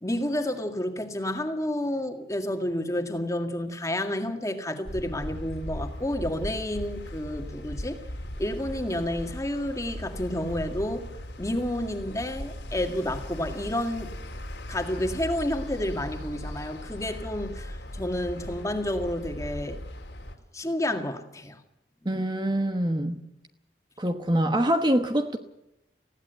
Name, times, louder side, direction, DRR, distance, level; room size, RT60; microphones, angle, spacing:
voice 1, 0.0-8.0 8.4-11.1 11.4-14.1 14.7-19.8 20.5-21.6, left 1 dB, 20° left, 1.9 m, -30 dB
sound 1, 4.9-20.4, equal, 85° left, 3.3 m, -38 dB
voice 2, 22.0-23.3 24.0-25.4, right 1 dB, 25° right, 1.1 m, -25 dB
20.0 x 16.0 x 8.0 m
head